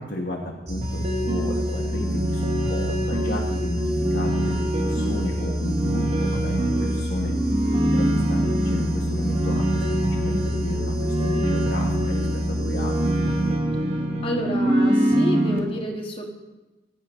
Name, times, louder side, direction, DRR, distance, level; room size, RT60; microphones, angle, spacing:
voice 1, 0.0-2.4 2.7-7.6 7.9-13.3, left 1 dB, 50° left, -1 dB, 1.2 m, -33 dB
sound 1, 0.7-13.8, left 1 dB, 55° right, 2.3 m, -29 dB
sound 2, 0.8-15.6, right 1 dB, 30° right, 1.2 m, -24 dB
voice 2, 14.2-16.2, equal, 25° left, 1 dB, 1.5 m, -29 dB
16.5 x 10.5 x 3.1 m, 1.1 s
head